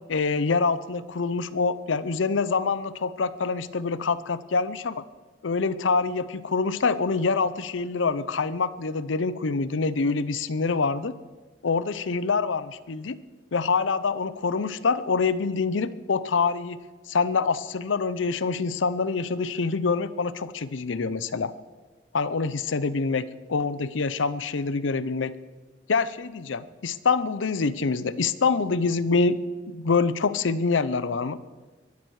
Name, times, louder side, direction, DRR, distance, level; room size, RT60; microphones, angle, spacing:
voice 1, 0.1-4.9 5.4-11.1 11.6-13.2 13.5-16.8 17.1-21.5 22.1-25.3 25.9-29.4 29.7-31.4, left 4 dB, 90° left, 16 dB, 0.7 m, -25 dB
22.5 x 12.5 x 4.8 m, 1.3 s
head